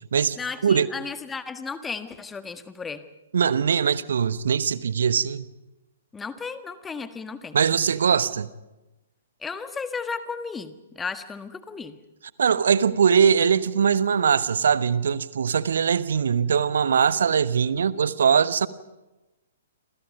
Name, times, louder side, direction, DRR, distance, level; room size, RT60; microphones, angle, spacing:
voice 1, 0.4-3.0 6.1-7.6 9.4-12.0, left 5 dB, 10° left, 1.6 m, -34 dB
voice 2, 3.3-5.4 7.5-8.5 12.4-18.7, right 7 dB, 60° right, 1.1 m, -21 dB
28.0 x 27.0 x 5.4 m
figure-of-eight pair, 120°, 0 cm